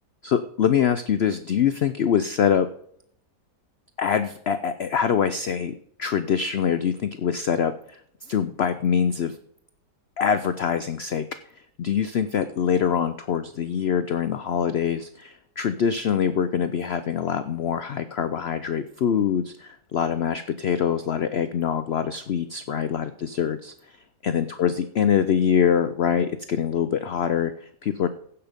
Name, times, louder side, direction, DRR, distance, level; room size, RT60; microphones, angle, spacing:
voice 1, 0.2-2.7 4.0-9.4 10.2-24.0 24.2-28.1, left 8 dB, 80° left, 11 dB, 0.5 m, -24 dB
15.5 x 5.8 x 5.1 m, 0.66 s
omnidirectional pair, 1.8 m